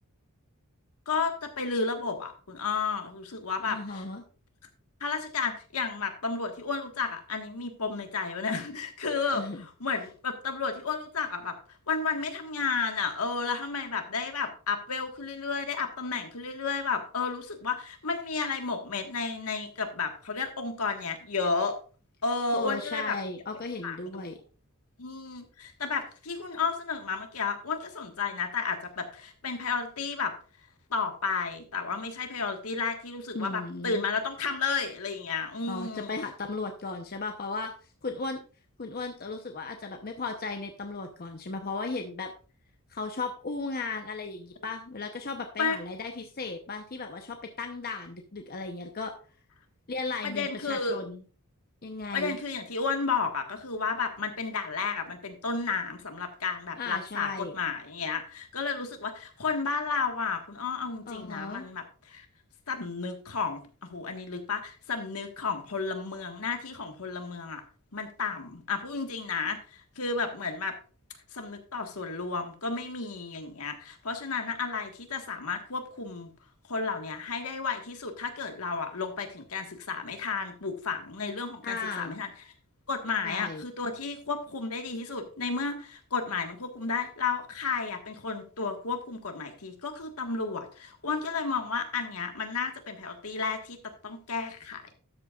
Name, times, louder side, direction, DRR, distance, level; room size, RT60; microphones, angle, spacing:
voice 1, 1.1-4.0 5.0-11.5 11.9-21.7 22.2-23.2 23.8-24.4 25.0-30.3 30.9-36.1 45.6-45.8 50.2-51.0 52.1-62.2 62.7-67.6 67.9-70.7 71.3-76.3 76.7-82.3 82.9-93.8 94.0-94.9, left 4 dB, 75° left, 5 dB, 1.6 m, -32 dB
voice 2, 3.7-4.2 9.3-9.7 22.5-24.4 33.3-34.0 35.7-37.7 38.0-38.4 38.8-42.3 42.9-49.1 49.9-51.2 51.8-52.4 56.8-57.5 61.1-61.6 81.6-82.2 83.2-83.6, left 3 dB, 45° left, 4 dB, 0.8 m, -36 dB
12.5 x 7.9 x 2.4 m, 0.38 s
head